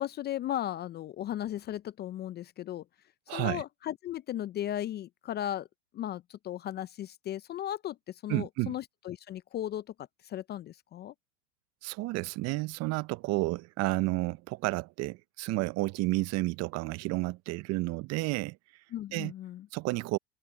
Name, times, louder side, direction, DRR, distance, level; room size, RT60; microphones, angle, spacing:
voice 1, 0.0-2.8 3.3-5.7 5.9-9.8 10.2-11.1 18.9-19.7, left 12 dB, 25° left, 0.6 m, -36 dB
voice 2, 3.3-3.6 8.3-8.7 11.8-18.6 19.1-19.3 19.7-20.2, right 21 dB, 35° right, 0.8 m, -31 dB
hypercardioid pair, 105°, 44 cm